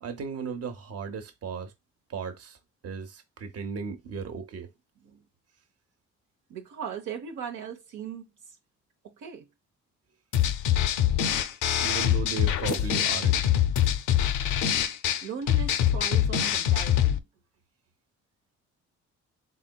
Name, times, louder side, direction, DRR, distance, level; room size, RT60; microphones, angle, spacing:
voice 1, 0.0-1.7 2.1-2.6 2.8-4.7 11.8-13.4, right 5 dB, 55° right, 0.9 m, -36 dB
voice 2, 6.5-8.6 9.0-9.5 15.2-17.2, right 7 dB, 85° right, 0.9 m, -38 dB
sound 1, 10.3-17.2, left 10 dB, 80° left, 0.5 m, -24 dB
4.1 x 3.8 x 2.2 m
cardioid pair, 90°, 30 cm